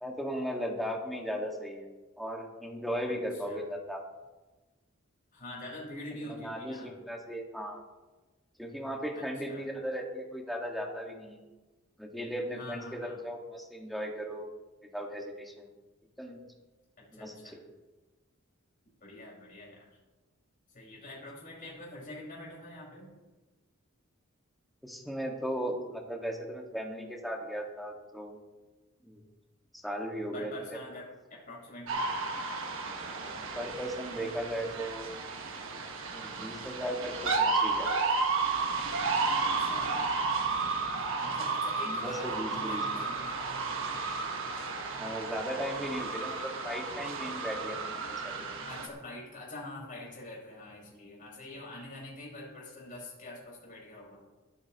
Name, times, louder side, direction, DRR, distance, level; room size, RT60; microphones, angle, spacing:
voice 1, 0.0-1.9 2.2-4.0 6.3-7.8 8.6-11.4 12.0-14.5 14.9-15.7 16.2-16.4 17.1-17.6 24.8-28.4 29.0-29.2 29.7-30.8 33.6-35.1 36.1-38.0 41.8-43.0 45.0-48.5, equal, ahead, 0 dB, 1.8 m, -37 dB
voice 2, 3.0-3.6 5.3-7.0 9.1-9.6 12.5-13.2 17.0-17.6 19.0-19.8 20.7-23.1 30.3-32.1 39.4-40.1 41.2-43.4 48.7-54.2, left 1 dB, 40° left, -4 dB, 5.3 m, -45 dB
sound 1, 31.9-48.9, right 4 dB, 70° right, 1.7 m, -32 dB
25.5 x 8.8 x 3.1 m, 1.2 s
head